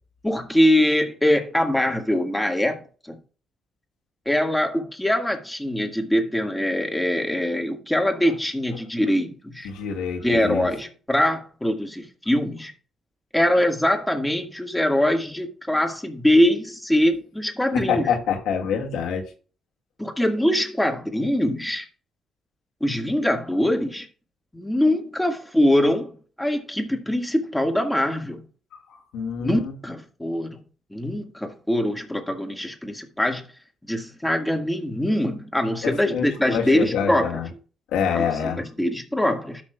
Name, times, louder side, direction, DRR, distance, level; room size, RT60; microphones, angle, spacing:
voice 1, 0.2-3.2 4.3-9.7 10.2-12.7 13.3-18.1 20.0-21.9 22.8-24.1 24.5-26.1 26.4-28.4 29.4-30.6 30.9-33.5 33.9-37.4 38.1-39.6, left 1 dB, 5° left, 1.8 m, -23 dB
voice 2, 9.6-10.7 17.7-19.3 29.1-29.7 35.8-37.5 37.9-38.6, left 7 dB, 90° left, 1.9 m, -26 dB
13.0 x 6.1 x 2.3 m
cardioid pair, 90°, 0 cm